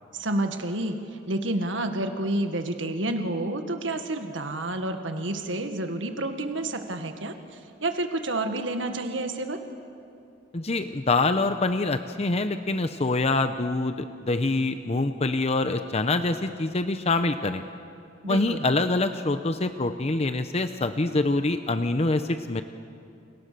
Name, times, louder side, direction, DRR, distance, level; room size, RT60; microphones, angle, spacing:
voice 1, 0.1-9.6 18.2-18.7, right 1 dB, 80° right, 6 dB, 1.8 m, -29 dB
voice 2, 10.5-17.6 18.3-22.6, left 2 dB, 35° left, 9 dB, 0.8 m, -25 dB
29.0 x 29.0 x 6.9 m, 2.5 s
head